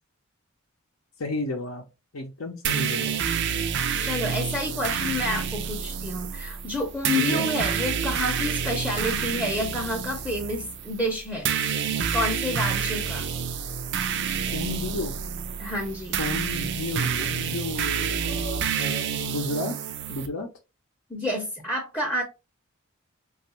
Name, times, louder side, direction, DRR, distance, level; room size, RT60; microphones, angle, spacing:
voice 1, 1.2-1.8 2.1-3.2 7.3-7.5 14.5-15.1 16.2-19.7 20.1-20.5, left 2 dB, 70° left, 0.6 m, -32 dB
sound 1, 2.6-20.3, right 7 dB, 55° right, 0.4 m, -28 dB
voice 2, 4.0-11.5 12.1-13.3 15.6-16.2 21.1-22.2, left 1 dB, 10° left, 0.6 m, -29 dB
3.3 x 2.4 x 2.9 m
head